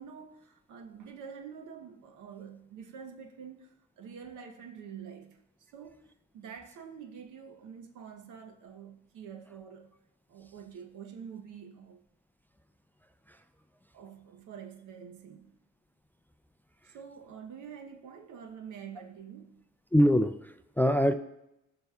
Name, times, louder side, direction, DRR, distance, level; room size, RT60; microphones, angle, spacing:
voice 1, 0.0-5.4 5.7-6.1 6.3-9.9 10.3-12.0 13.9-15.5 16.8-19.6, right 7 dB, 80° right, 0.9 m, -47 dB
voice 2, 19.9-21.1, equal, 5° left, 0.3 m, -24 dB
14.5 x 5.4 x 2.3 m
cardioid pair, 90°, 30 cm